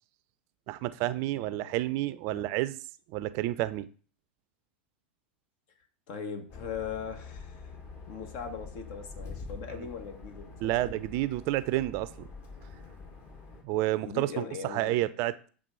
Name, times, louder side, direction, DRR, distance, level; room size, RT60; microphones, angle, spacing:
voice 1, 0.7-2.8 3.1-3.9 10.6-12.3 13.6-15.3, right 16 dB, 50° right, 0.5 m, -30 dB
voice 2, 1.3-1.7 2.3-2.5 5.8-11.0 14.0-15.1, left 6 dB, 55° left, 1.4 m, -40 dB
sound 1, 6.5-13.6, left 4 dB, 40° left, 2.0 m, -45 dB
7.6 x 3.6 x 5.3 m
hypercardioid pair, 95°, 6 cm